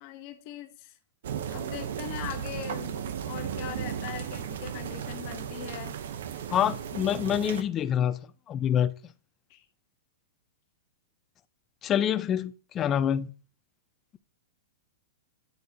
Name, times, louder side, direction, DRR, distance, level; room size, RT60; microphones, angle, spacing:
voice 1, 0.0-1.0 1.5-6.0 9.5-9.7, left 11 dB, 45° left, 1.0 m, -41 dB
sound 1, 1.2-7.6, right 8 dB, 70° right, 0.7 m, -35 dB
voice 2, 6.5-8.2 8.5-8.9 11.8-13.3, left 9 dB, 25° left, 0.4 m, -26 dB
10.0 x 4.0 x 2.8 m
hypercardioid pair, 140°, 0 cm